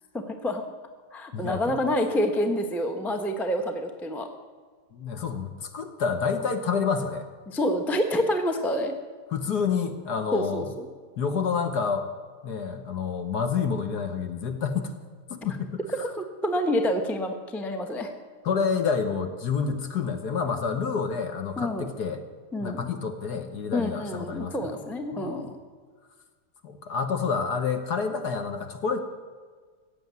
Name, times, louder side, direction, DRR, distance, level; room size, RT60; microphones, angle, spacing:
voice 1, 0.1-0.6 1.1-4.3 7.5-8.9 10.3-10.9 16.0-18.1 21.6-21.9 22.5-22.9 23.7-25.5, equal, ahead, 5 dB, 0.5 m, -28 dB
voice 2, 1.3-1.8 4.9-7.3 9.3-10.7 11.2-12.1 12.4-14.9 15.3-16.1 18.4-22.2 22.6-24.7 25.1-25.6 26.6-29.0, left 6 dB, 55° left, 7 dB, 1.4 m, -28 dB
15.5 x 7.9 x 9.5 m, 1.5 s
omnidirectional pair, 2.4 m